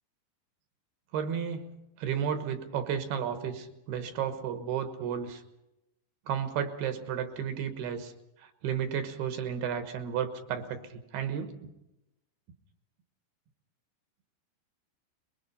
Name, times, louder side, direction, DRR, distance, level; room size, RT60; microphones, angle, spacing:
voice 1, 1.1-1.7 2.0-5.4 6.3-8.1 8.4-11.7, right 8 dB, 70° right, 8 dB, 3.0 m, -33 dB
23.5 x 22.0 x 5.6 m, 0.92 s
omnidirectional pair, 5.1 m